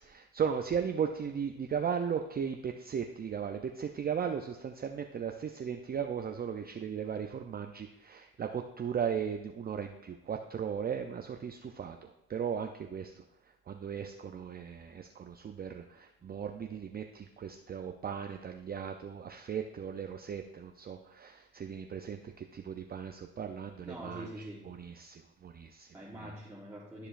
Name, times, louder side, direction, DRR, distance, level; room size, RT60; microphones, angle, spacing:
voice 1, 0.0-13.1 13.7-24.3 24.7-25.9, right 7 dB, 30° right, 5 dB, 0.4 m, -37 dB
voice 2, 23.8-24.7 25.9-27.1, equal, 5° right, -4 dB, 1.3 m, -44 dB
12.5 x 4.9 x 2.5 m, 0.89 s
cardioid pair, 90°, 30 cm